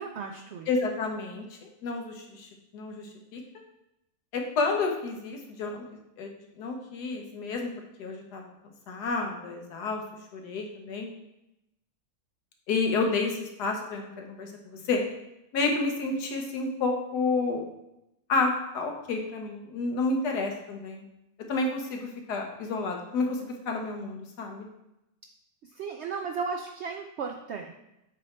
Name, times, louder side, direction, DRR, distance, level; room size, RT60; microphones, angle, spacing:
voice 1, 0.0-0.7 25.6-27.8, right 5 dB, 80° right, 4 dB, 0.6 m, -35 dB
voice 2, 0.7-3.4 4.3-5.8 6.2-7.7 8.0-8.4 8.9-10.0 10.3-11.1 12.7-15.0 15.5-17.7 18.3-21.1 21.5-24.7, left 3 dB, 85° left, 2 dB, 1.5 m, -30 dB
7.7 x 3.2 x 4.3 m, 0.87 s
omnidirectional pair, 1.7 m